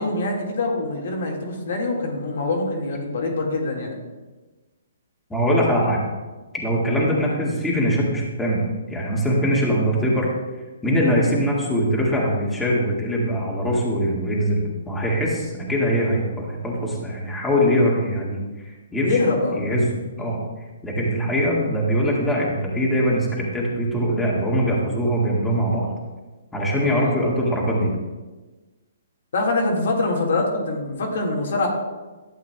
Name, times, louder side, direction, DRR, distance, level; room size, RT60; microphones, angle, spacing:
voice 1, 0.0-4.0 19.0-19.6 20.2-20.3 26.9-27.1 29.3-31.7, left 2 dB, 65° left, -1 dB, 1.8 m, -24 dB
voice 2, 5.3-6.0 6.5-8.6 8.9-10.3 10.8-18.4 18.9-19.2 19.6-19.9 20.2-20.4 20.8-25.9 26.5-27.9, equal, 5° left, -5 dB, 1.9 m, -22 dB
12.0 x 7.9 x 2.3 m, 1.2 s
hypercardioid pair, 135°, 0 cm